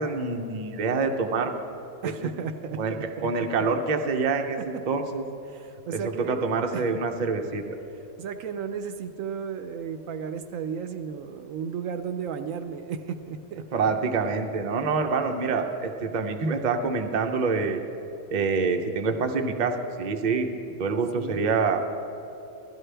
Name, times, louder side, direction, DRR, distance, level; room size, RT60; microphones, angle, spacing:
voice 1, 0.0-1.5 2.8-2.9 3.2-5.2 6.0-7.6 13.7-17.8 18.3-20.5 20.8-21.8, right 4 dB, 45° right, 4 dB, 0.6 m, -26 dB
voice 2, 2.0-2.8 3.2-3.3 5.5-7.0 8.2-13.6 14.9-15.0 21.1-21.6, right 7 dB, 75° right, 8 dB, 1.0 m, -34 dB
16.5 x 12.5 x 3.4 m, 2.9 s
omnidirectional pair, 1.5 m